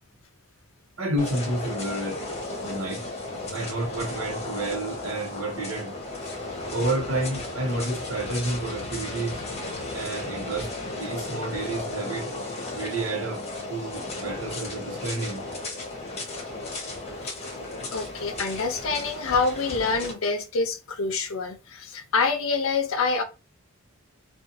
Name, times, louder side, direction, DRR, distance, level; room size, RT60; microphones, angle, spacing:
voice 1, 1.0-2.2 2.6-3.1 3.5-6.0 6.7-9.4 9.9-12.3 12.7-13.4 13.7-15.4, right 2 dB, 85° right, 0.9 m, -30 dB
sound 1, 1.2-20.1, left 2 dB, 30° left, 0.9 m, -35 dB
voice 2, 17.9-23.2, left 4 dB, 75° left, 0.6 m, -26 dB
2.6 x 2.4 x 2.5 m
head